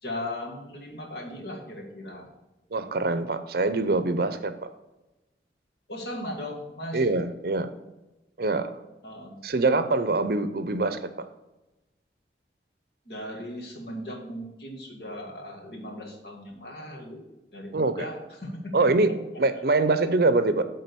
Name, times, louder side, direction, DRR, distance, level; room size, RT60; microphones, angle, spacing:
voice 1, 0.0-2.3 5.9-7.1 9.0-9.4 13.1-17.2 17.5-19.2, left 1 dB, 65° left, 0 dB, 1.9 m, -37 dB
voice 2, 2.7-4.5 6.9-7.7 8.4-8.7 9.4-11.3 17.7-18.0 18.7-19.1 19.4-20.6, right 3 dB, 55° right, 11 dB, 0.6 m, -24 dB
8.5 x 3.8 x 6.8 m, 1.0 s
head